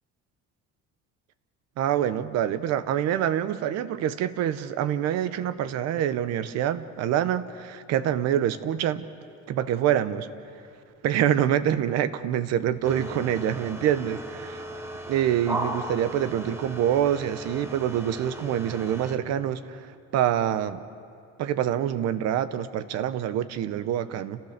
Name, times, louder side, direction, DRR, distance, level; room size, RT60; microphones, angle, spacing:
voice 1, 1.8-9.1 9.5-10.3 11.0-14.6 15.1-20.8 21.4-24.4, right 10 dB, 60° right, 13 dB, 0.9 m, -26 dB
sound 1, 12.8-19.2, right 1 dB, 10° right, 1.1 m, -36 dB
29.5 x 15.5 x 6.6 m, 2.4 s
cardioid pair, 175°, 30 cm